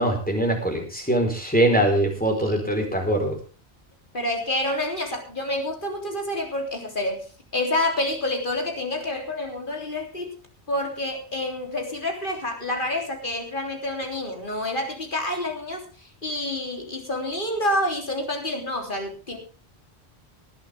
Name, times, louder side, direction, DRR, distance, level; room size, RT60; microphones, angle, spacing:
voice 1, 0.0-3.4, right 1 dB, 10° left, 2 dB, 4.5 m, -22 dB
voice 2, 2.3-2.7 4.1-7.3 7.5-10.3 10.7-15.9 16.2-19.4, left 1 dB, 50° left, 2 dB, 3.7 m, -28 dB
19.0 x 12.0 x 3.6 m, 0.35 s
omnidirectional pair, 1.1 m